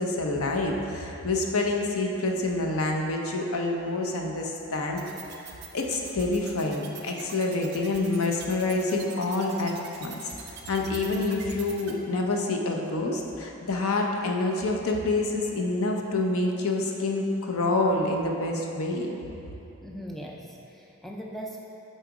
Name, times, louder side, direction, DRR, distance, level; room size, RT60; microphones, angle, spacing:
voice 1, 0.0-5.0 5.7-9.7 10.0-10.1 10.5-19.2, left 2 dB, 85° left, 1 dB, 0.7 m, -27 dB
sound 1, 5.0-11.9, right 8 dB, 50° right, 0.7 m, -43 dB
voice 2, 19.8-21.6, equal, ahead, -2 dB, 0.4 m, -39 dB
7.6 x 4.1 x 4.7 m, 2.9 s
head